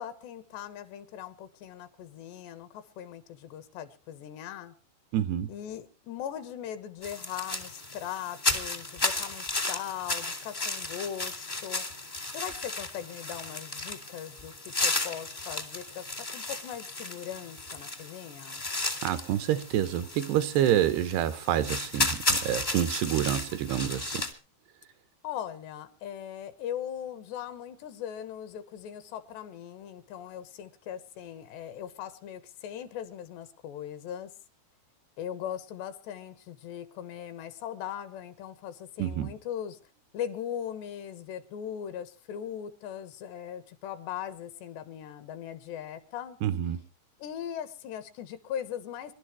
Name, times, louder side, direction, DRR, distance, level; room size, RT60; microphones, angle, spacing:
voice 1, 0.0-4.7 5.5-11.9 12.3-14.5 14.8-18.6 25.2-34.3 35.2-39.8 40.1-46.4 47.2-49.1, left 10 dB, 75° left, 3.4 m, -39 dB
voice 2, 5.1-5.5 19.0-24.3 39.0-39.3 46.4-46.8, right 11 dB, 75° right, 2.7 m, -27 dB
sound 1, 7.0-24.3, left 2 dB, 30° left, 0.9 m, -34 dB
26.5 x 12.0 x 3.2 m
omnidirectional pair, 5.1 m